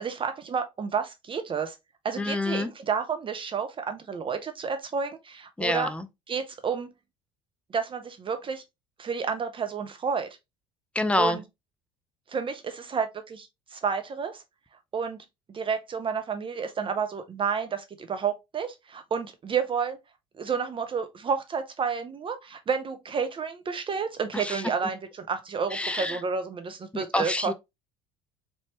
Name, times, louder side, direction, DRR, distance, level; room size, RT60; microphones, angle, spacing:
voice 1, 0.0-1.8 2.0-5.9 6.3-6.9 7.7-8.6 9.0-10.3 11.2-11.4 12.3-14.4 14.9-20.0 20.4-27.5, right 6 dB, 30° right, 0.7 m, -30 dB
voice 2, 2.2-2.7 5.6-6.0 11.0-11.4 24.4-24.6 25.7-26.2 26.9-27.5, left 2 dB, 5° left, 0.6 m, -27 dB
4.1 x 3.4 x 3.0 m
hypercardioid pair, 70°, 16 cm